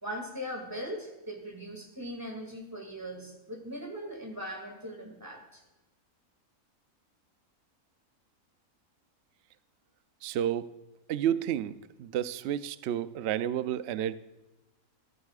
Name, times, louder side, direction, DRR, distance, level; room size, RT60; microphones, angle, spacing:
voice 1, 0.0-5.6, equal, 15° right, 2 dB, 2.2 m, -40 dB
voice 2, 10.2-10.7 11.1-14.2, right 10 dB, 65° right, 13 dB, 0.7 m, -31 dB
14.5 x 14.5 x 2.4 m, 1.1 s
omnidirectional pair, 1.5 m